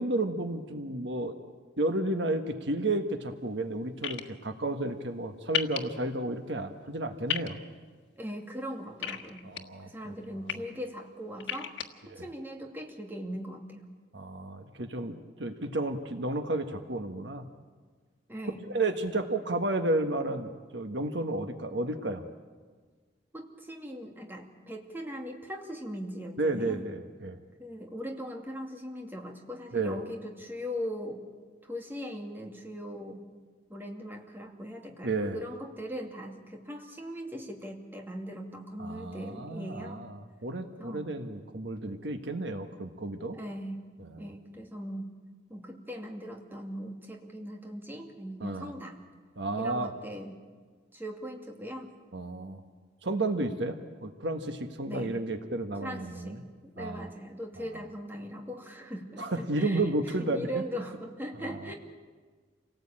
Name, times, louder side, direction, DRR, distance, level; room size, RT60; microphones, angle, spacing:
voice 1, 0.0-1.3 1.8-7.6 9.4-10.4 12.1-12.3 14.1-17.5 18.7-22.2 26.4-27.4 29.7-30.0 35.0-35.4 38.8-43.4 44.0-44.3 48.4-48.7 49.4-49.9 52.1-52.6 53.0-53.7 54.0-56.4 56.8-57.1 59.2-60.6 61.4-61.7, right 2 dB, 65° right, 6 dB, 1.5 m, -32 dB
sound 1, 4.0-4.2 5.5-5.8 7.3-7.5 9.0-9.6 10.2-10.5 11.4-11.8, left 8 dB, 85° left, 1.5 m, -31 dB
voice 2, 8.2-9.4 9.8-11.7 12.1-13.9 18.3-18.6 23.3-26.8 27.6-31.2 31.6-33.2 33.7-40.0 40.8-41.1 43.3-43.8 44.2-45.1 45.5-49.0 49.6-50.3 50.9-51.9 54.8-55.2 55.8-61.7, equal, 10° right, 1 dB, 2.4 m, -40 dB
28.0 x 18.5 x 8.8 m, 1.5 s
head